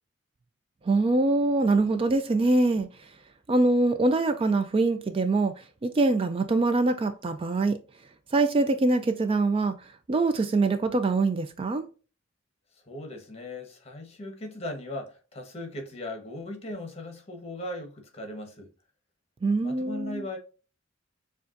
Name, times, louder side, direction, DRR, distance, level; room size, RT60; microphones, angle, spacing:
voice 1, 0.8-2.9 3.5-5.5 5.8-7.8 8.3-11.9 19.4-20.2, right 2 dB, 25° right, 0.3 m, -24 dB
voice 2, 12.7-18.7 19.6-20.4, left 1 dB, 30° left, 1.2 m, -38 dB
6.8 x 2.4 x 2.5 m
head